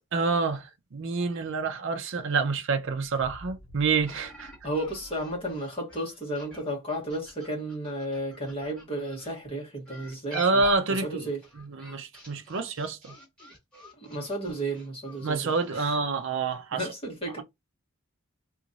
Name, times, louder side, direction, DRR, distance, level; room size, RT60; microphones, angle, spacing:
voice 1, 0.1-4.5 10.3-11.3 11.8-13.1 15.2-16.9, right 4 dB, 55° right, 0.5 m, -27 dB
sound 1, 2.8-5.6, equal, 55° left, 0.8 m, -50 dB
sound 2, 4.0-9.3 9.8-15.7, left 1 dB, 5° left, 1.6 m, -48 dB
voice 2, 4.6-10.6 10.9-11.4 14.0-15.9 16.7-17.4, right 1 dB, 25° left, 1.4 m, -33 dB
2.9 x 2.5 x 4.0 m
head